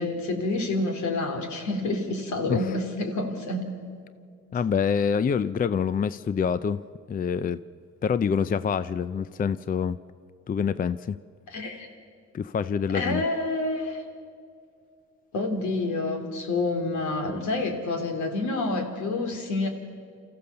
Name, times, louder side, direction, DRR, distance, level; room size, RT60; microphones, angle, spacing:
voice 1, 0.0-3.7 11.5-11.9 12.9-14.0 15.3-19.7, left 2 dB, 70° left, 4 dB, 3.0 m, -28 dB
voice 2, 4.5-6.8 7.1-7.6 8.0-10.0 10.5-11.2 12.3-13.2, left 6 dB, 30° left, 15 dB, 0.4 m, -26 dB
27.0 x 14.5 x 6.8 m, 2.3 s
cardioid pair, 90°, 30 cm